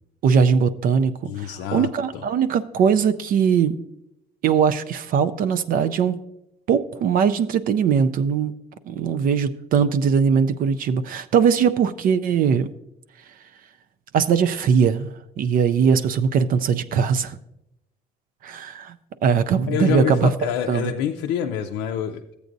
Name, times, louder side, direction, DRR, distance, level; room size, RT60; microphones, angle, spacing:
voice 1, 0.2-3.8 4.4-6.2 6.7-8.5 8.9-12.7 14.1-15.1 15.4-17.4 18.4-19.0 19.2-20.3 20.7-20.9, right 6 dB, 60° right, 10 dB, 0.4 m, -20 dB
voice 2, 1.2-2.2 19.7-22.2, left 9 dB, 90° left, 3 dB, 0.5 m, -27 dB
13.5 x 8.1 x 2.6 m, 0.86 s
cardioid pair, 110°, 17 cm